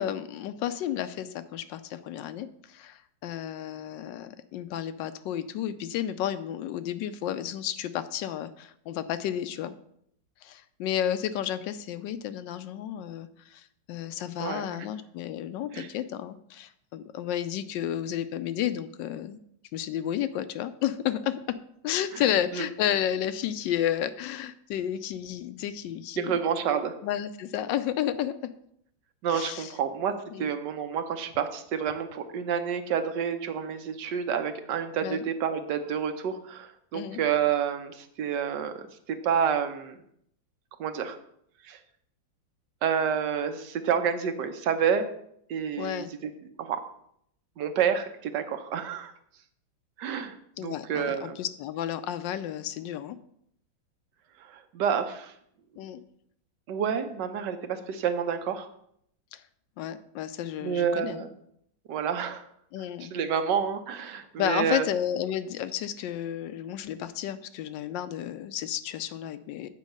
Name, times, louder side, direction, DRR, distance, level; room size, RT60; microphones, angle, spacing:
voice 1, 0.0-9.7 10.4-19.4 19.7-21.6 21.8-26.4 27.0-28.3 29.3-29.7 30.3-30.5 35.0-35.2 36.9-37.2 45.8-46.1 50.6-53.2 55.8-56.0 59.3-59.4 59.8-61.3 62.7-63.1 64.4-69.7, left 10 dB, 80° left, 12 dB, 1.2 m, -32 dB
voice 2, 14.4-14.9 15.7-15.9 22.1-22.3 22.5-22.6 26.2-26.9 29.2-40.0 40.8-41.2 41.6-41.8 42.8-45.1 45.5-46.3 46.6-46.8 47.6-49.1 50.0-51.4 54.4-55.3 56.7-58.7 60.6-61.3 61.9-62.4 63.0-64.9, right 7 dB, 70° right, 8 dB, 1.3 m, -29 dB
8.3 x 4.6 x 6.5 m, 0.71 s
omnidirectional pair, 2.0 m